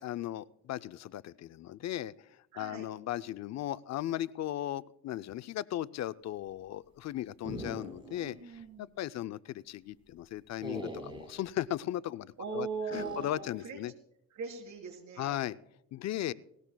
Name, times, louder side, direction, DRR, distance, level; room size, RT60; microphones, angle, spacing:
voice 1, 0.0-2.1 2.5-8.4 8.8-12.7 12.9-13.9 15.2-15.6 15.9-16.3, left 13 dB, 60° left, 15 dB, 0.5 m, -37 dB
voice 2, 2.5-2.9 8.0-8.9 12.4-13.8 14.3-15.4, right 4 dB, 70° right, 3 dB, 3.8 m, -40 dB
sound 1, 7.4-8.3 8.6-8.7 10.6-11.4 12.9-13.4, right 1 dB, 15° right, 4.0 m, -42 dB
19.5 x 18.5 x 2.3 m, 0.79 s
cardioid pair, 90°, 30 cm